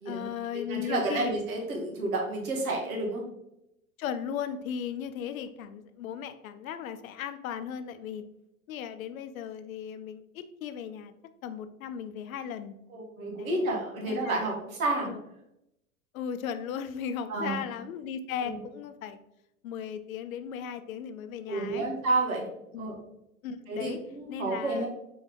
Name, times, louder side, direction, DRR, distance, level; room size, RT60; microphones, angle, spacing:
voice 1, 0.1-1.3 4.0-8.2 8.7-11.1 11.4-12.8 13.4-13.7 14.1-14.5 15.0-15.2 16.1-19.2 19.6-21.9 22.7-22.9 23.4-24.0 24.3-24.9, left 8 dB, 70° left, 10 dB, 0.6 m, -36 dB
voice 2, 0.7-3.2 12.9-15.1 17.3-17.6 18.4-18.6 21.5-22.4 22.8-22.9 23.7-24.9, right 2 dB, 70° right, -1 dB, 1.6 m, -30 dB
4.2 x 3.3 x 3.6 m, 0.85 s
hypercardioid pair, 100°, 43 cm